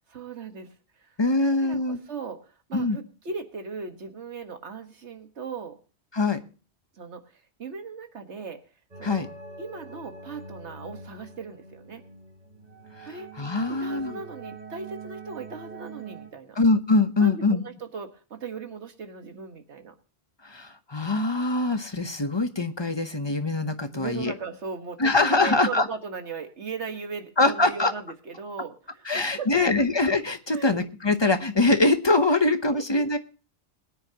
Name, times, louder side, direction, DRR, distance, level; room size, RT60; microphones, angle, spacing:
voice 1, 0.1-1.1 1.4-5.8 6.9-8.6 9.0-9.2 9.6-12.0 13.1-13.3 13.7-16.6 17.2-19.9 23.9-29.8 30.5-30.8 32.7-33.2, right 5 dB, 85° right, 6 dB, 1.7 m, -38 dB
voice 2, 1.2-2.0 2.7-3.0 6.1-6.4 9.0-9.3 13.0-13.1 13.4-14.2 16.6-17.6 20.4-24.3 25.0-25.9 27.4-27.9 29.1-33.2, left 2 dB, 25° left, 9 dB, 0.8 m, -23 dB
sound 1, 8.9-16.3, right 4 dB, 40° right, 1.7 m, -44 dB
21.5 x 9.9 x 2.9 m, 0.35 s
omnidirectional pair, 1.1 m